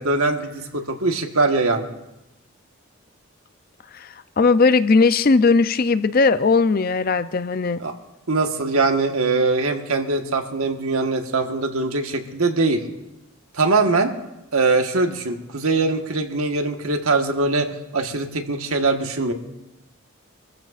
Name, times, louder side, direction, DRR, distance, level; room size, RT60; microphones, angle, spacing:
voice 1, 0.0-1.9 7.8-7.9 8.3-12.8 13.5-14.1 14.5-19.3, right 3 dB, 75° right, 5 dB, 1.4 m, -22 dB
voice 2, 3.9-7.8, left 4 dB, 40° left, 13 dB, 0.4 m, -18 dB
27.0 x 15.0 x 2.5 m, 0.93 s
head